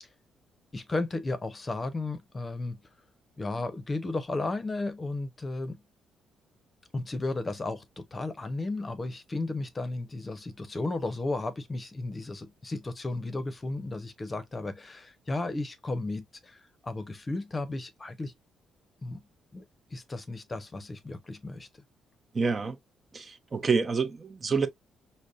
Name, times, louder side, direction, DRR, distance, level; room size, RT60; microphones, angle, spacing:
voice 1, 0.7-2.8 3.4-5.8 6.9-18.3 19.0-19.2 19.5-19.6 19.9-21.7, left 2 dB, 25° left, 0.7 m, -34 dB
voice 2, 22.3-22.8 23.1-24.7, right 5 dB, 35° right, 0.7 m, -27 dB
5.2 x 2.1 x 2.4 m
cardioid pair, 90°, 0 cm